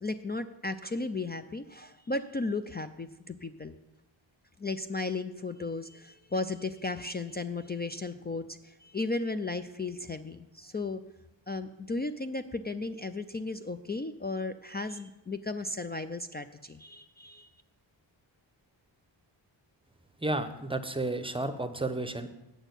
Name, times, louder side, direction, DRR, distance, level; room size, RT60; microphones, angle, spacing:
voice 1, 0.0-3.8 4.6-11.0 11.5-17.5, left 3 dB, 25° left, 9 dB, 0.4 m, -35 dB
voice 2, 20.2-22.3, right 2 dB, 10° right, 9 dB, 0.7 m, -32 dB
8.9 x 6.2 x 8.2 m, 0.97 s
wide cardioid pair, 100°, 46 cm